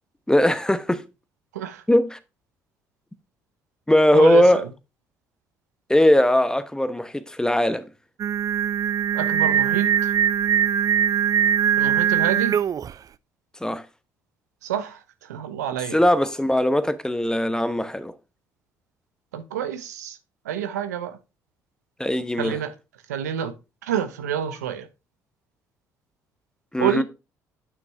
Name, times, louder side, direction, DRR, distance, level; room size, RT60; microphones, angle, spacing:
voice 1, 0.3-1.0 1.9-2.2 3.9-4.6 5.9-7.9 13.6-13.8 15.9-18.1 22.0-22.6 26.7-27.0, left 1 dB, 10° left, 1.0 m, -19 dB
voice 2, 4.1-4.6 9.1-9.9 11.8-12.6 14.6-15.0 15.3-16.0 19.3-20.2 20.5-21.2 22.4-22.7 23.1-23.5 23.8-24.9 26.8-27.0, right 9 dB, 90° right, 0.8 m, -27 dB
Singing, 8.2-12.9, right 9 dB, 45° right, 0.4 m, -21 dB
9.4 x 6.1 x 3.4 m
hypercardioid pair, 50°, 9 cm